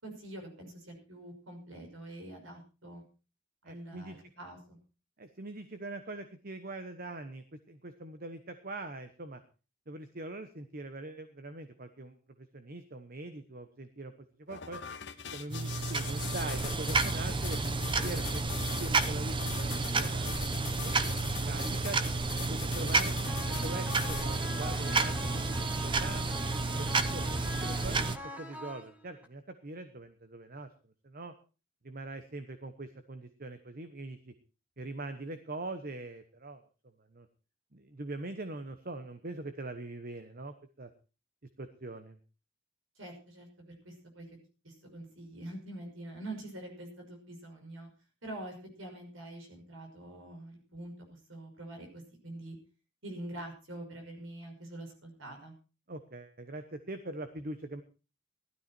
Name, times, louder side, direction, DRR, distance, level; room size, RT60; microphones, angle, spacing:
voice 1, 0.0-3.0 3.7-4.8 43.0-44.3 44.6-47.9 48.2-52.6 53.0-55.5, right 1 dB, 80° right, 2 dB, 5.8 m, -45 dB
voice 2, 3.6-4.2 5.2-9.4 9.9-14.1 14.4-14.8 15.3-17.6 17.9-20.4 20.8-20.9 21.4-22.1 22.5-23.1 23.5-26.2 26.8-30.7 31.0-31.3 31.8-34.3 34.8-36.6 37.0-37.3 37.7-40.9 41.6-42.2 55.9-57.8, right 2 dB, 45° right, 9 dB, 1.1 m, -42 dB
sound 1, 14.5-24.5, left 8 dB, 60° left, 1.1 m, -42 dB
sound 2, 15.5-28.2, right 3 dB, 25° right, 0.9 m, -31 dB
sound 3, 23.3-29.3, left 1 dB, 5° right, 2.0 m, -43 dB
16.0 x 12.5 x 4.5 m, 0.34 s
head